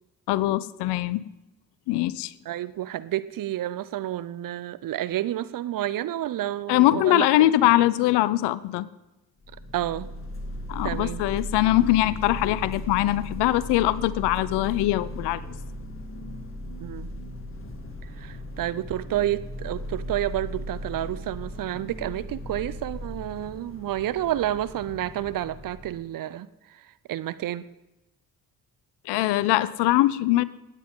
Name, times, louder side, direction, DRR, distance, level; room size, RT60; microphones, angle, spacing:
voice 1, 0.3-1.2 1.9-2.3 6.7-8.9 10.7-15.4 29.1-30.4, left 15 dB, 60° left, 19 dB, 0.6 m, -22 dB
voice 2, 2.5-7.2 9.7-10.1 10.8-11.2 16.8-17.1 18.2-26.8 27.1-27.6, right 13 dB, 45° right, 16 dB, 0.7 m, -30 dB
sound 1, 9.4-26.0, equal, 25° left, 2.0 m, -37 dB
17.0 x 9.2 x 3.6 m, 1.0 s
figure-of-eight pair, 45°, 46 cm